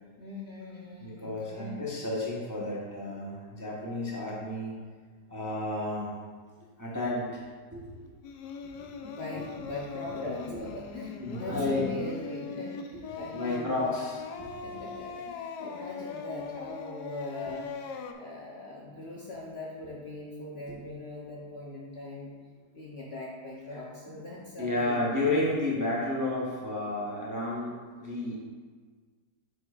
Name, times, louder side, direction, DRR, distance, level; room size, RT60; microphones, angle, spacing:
voice 1, 0.2-1.8 8.7-13.8 14.6-17.7 18.1-22.3 22.7-25.1, left 2 dB, 50° left, -4 dB, 0.9 m, -41 dB
voice 2, 1.0-4.7 5.3-6.2 6.8-7.4 7.7-8.1 8.8-8.9 10.5-10.6 11.2-11.8 13.3-14.5 20.7-20.8 23.7-23.8 24.1-24.2 24.6-28.4, left 2 dB, 15° right, -6 dB, 0.8 m, -32 dB
Singing, 8.2-18.1, left 5 dB, 75° left, 1.1 m, -40 dB
7.5 x 6.3 x 2.5 m, 1.6 s
omnidirectional pair, 1.8 m